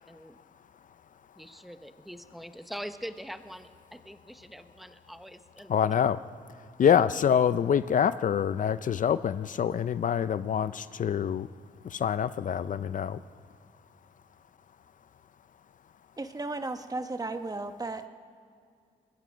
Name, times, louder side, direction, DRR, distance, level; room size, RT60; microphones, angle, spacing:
voice 1, 0.1-0.4 1.4-5.7 6.8-6.9, equal, ahead, 9 dB, 1.0 m, -43 dB
voice 2, 5.7-6.2 6.5-11.5 11.8-13.2, left 8 dB, 55° left, 14 dB, 0.5 m, -26 dB
voice 3, 16.2-18.1, right 3 dB, 25° right, 8 dB, 1.1 m, -34 dB
25.0 x 21.0 x 5.1 m, 2.3 s
cardioid pair, 110°, 16 cm